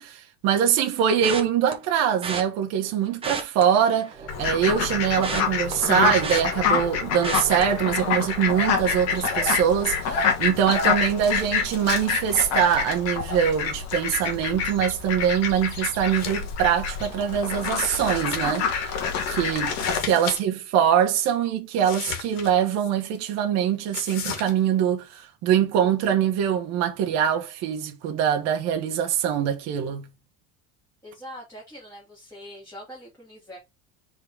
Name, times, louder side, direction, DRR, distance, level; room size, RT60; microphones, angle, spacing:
voice 1, 0.0-18.7 19.3-19.7 20.0-30.1, right 9 dB, 50° right, 1.3 m, -23 dB
sound 1, 1.2-1.7 2.2-2.4 3.1-4.4 4.7-6.9 7.2-7.6 8.1-8.4 8.6-8.7, right 4 dB, 15° right, 0.9 m, -32 dB
Fowl, 4.3-20.0, left 6 dB, 45° left, 1.8 m, -27 dB
sound 2, 16.1-16.5 16.8-16.9 17.6-18.7 19.6-20.4 20.7-20.8 21.8-22.9 23.9-24.5, left 7 dB, 65° left, 2.2 m, -35 dB
voice 2, 19.5-20.4 31.0-33.6, equal, 10° left, 2.8 m, -44 dB
4.9 x 3.9 x 4.9 m
cardioid pair, 180°, 35 cm